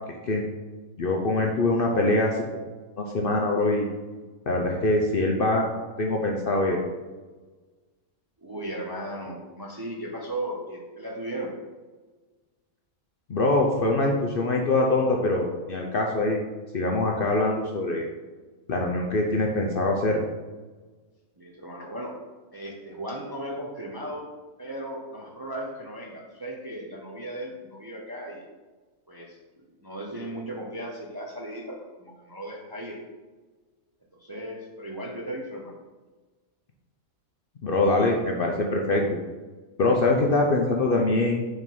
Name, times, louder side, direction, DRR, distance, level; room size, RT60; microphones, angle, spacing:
voice 1, 1.0-2.6 3.0-3.9 4.5-5.7 6.0-6.8 13.3-16.4 16.7-18.1 18.7-20.2 37.6-39.2 39.8-41.5, left 2 dB, 55° left, 0 dB, 0.7 m, -23 dB
voice 2, 8.4-11.5 21.4-22.2 22.5-24.2 24.6-28.5 29.1-29.4 29.8-33.0 34.2-35.7, right 1 dB, 25° right, -1 dB, 0.5 m, -36 dB
4.8 x 3.8 x 5.4 m, 1.3 s
omnidirectional pair, 1.5 m